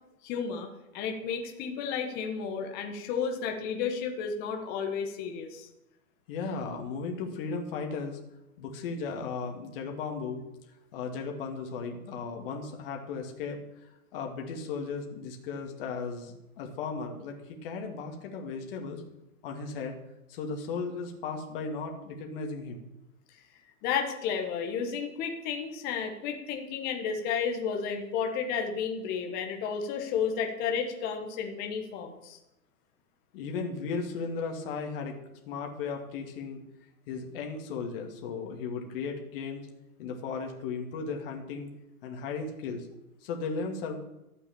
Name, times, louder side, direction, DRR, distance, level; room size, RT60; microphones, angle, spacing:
voice 1, 0.2-5.7 23.8-32.4, left 6 dB, 20° left, 4 dB, 1.3 m, -32 dB
voice 2, 6.3-8.2 8.6-10.4 10.9-13.6 14.1-19.0 19.4-20.0 20.3-22.9 33.3-35.2 35.5-36.6 37.1-39.6 40.0-41.7 42.0-42.9 43.2-44.0, left 4 dB, 35° left, 2 dB, 2.1 m, -36 dB
12.5 x 8.3 x 7.0 m, 0.93 s
hypercardioid pair, 150°, 46 cm